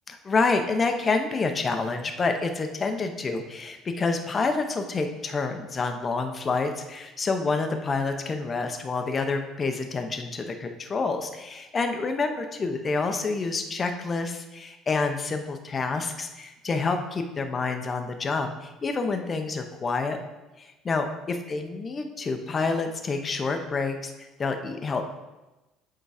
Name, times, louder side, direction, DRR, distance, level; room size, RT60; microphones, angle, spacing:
voice 1, 0.1-20.2 20.6-24.1 24.4-25.0, left 4 dB, 25° left, 6 dB, 0.7 m, -28 dB
7.9 x 3.8 x 4.8 m, 1.1 s
cardioid pair, 145°, 0 cm